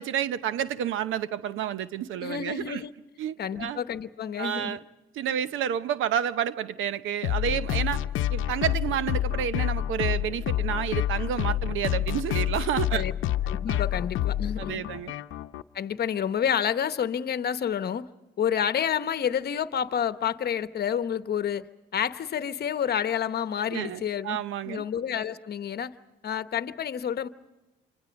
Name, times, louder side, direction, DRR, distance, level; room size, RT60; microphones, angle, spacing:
voice 1, 0.0-2.8 3.2-3.8 4.4-4.8 5.1-8.0 8.3-13.0 13.7-13.8 14.6-15.1 23.7-24.8, right 9 dB, 85° right, 0.8 m, -30 dB
voice 2, 2.2-2.9 3.4-4.8 12.9-13.1 13.5-14.9 15.7-18.1 18.4-21.7 21.9-24.4 24.6-25.9 26.2-27.3, left 8 dB, 55° left, 1.0 m, -29 dB
sound 1, 7.2-15.6, left 12 dB, 85° left, 0.7 m, -28 dB
27.5 x 25.0 x 5.2 m
cardioid pair, 90°, 20 cm